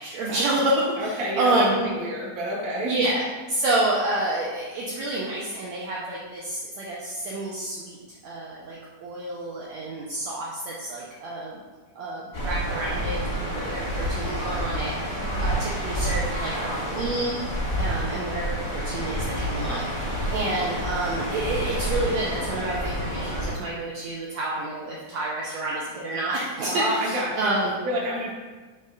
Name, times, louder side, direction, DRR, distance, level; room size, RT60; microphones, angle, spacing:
voice 1, 0.0-1.9 2.8-8.0 8.2-11.6 12.0-19.8 20.3-27.7, right 2 dB, 75° right, -5 dB, 1.6 m, -29 dB
voice 2, 1.0-3.2 15.2-15.5 26.6-27.5 27.8-28.3, equal, 55° right, -7 dB, 1.0 m, -29 dB
sound 1, 12.3-23.5, equal, 30° left, 0.8 m, -29 dB
5.4 x 3.4 x 5.2 m, 1.3 s
omnidirectional pair, 3.9 m